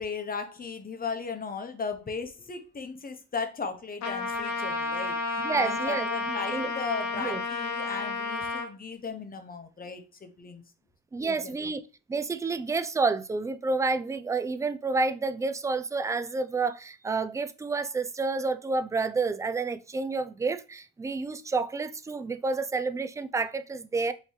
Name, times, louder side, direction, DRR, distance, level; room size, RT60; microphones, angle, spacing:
voice 1, 0.0-10.6 11.2-11.7, left 5 dB, 30° left, 0.9 m, -37 dB
Trumpet, 4.0-8.7, left 3 dB, 65° left, 1.0 m, -31 dB
voice 2, 5.4-6.1 6.5-6.7 7.1-7.4 11.1-11.8 12.1-24.1, right 4 dB, 10° right, 0.3 m, -29 dB
5.4 x 3.0 x 3.2 m
cardioid pair, 90°, 30 cm